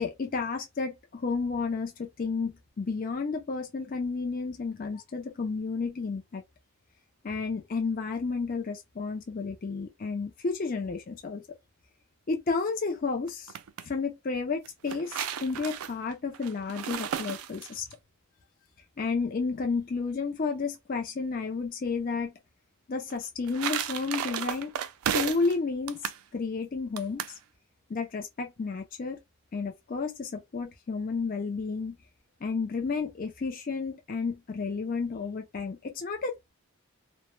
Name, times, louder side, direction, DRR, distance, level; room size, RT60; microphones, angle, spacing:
voice 1, 0.0-6.4 7.2-11.4 12.3-13.5 13.8-17.8 19.0-22.3 22.9-24.7 25.1-26.0 26.3-27.2 27.9-29.2 29.5-32.0 32.4-36.5, left 4 dB, 40° left, 0.4 m, -31 dB
sound 1, 13.3-13.9 14.6-17.9 23.1-25.6 25.9-26.2 27.0-27.4, right 9 dB, 85° right, 0.3 m, -34 dB
2.1 x 2.1 x 3.0 m
head